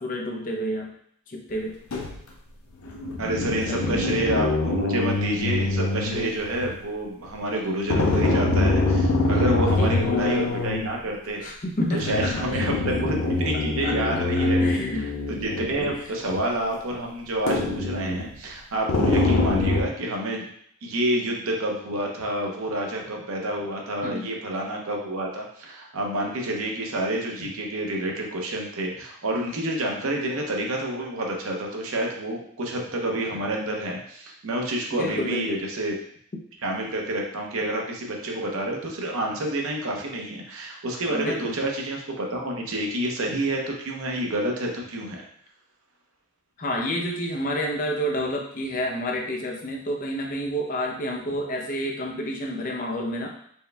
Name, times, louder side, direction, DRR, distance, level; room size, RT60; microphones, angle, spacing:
voice 1, 0.0-0.9 1.3-1.7 3.6-4.0 9.7-10.2 11.4-12.8 13.8-15.1 24.0-24.2 34.9-35.6 37.6-37.7 41.1-41.5 46.6-53.3, equal, 40° left, 0 dB, 0.6 m, -29 dB
sound 1, 1.9-2.2 2.8-6.8 7.9-10.9 12.0-16.0 16.3-16.4 17.5-18.3 18.9-19.8, left 2 dB, 85° left, 0.6 m, -24 dB
voice 2, 3.2-11.4 11.9-20.5 20.8-35.9 36.6-45.2, right 1 dB, 80° right, 0 dB, 0.8 m, -28 dB
4.5 x 2.2 x 3.3 m, 0.66 s
head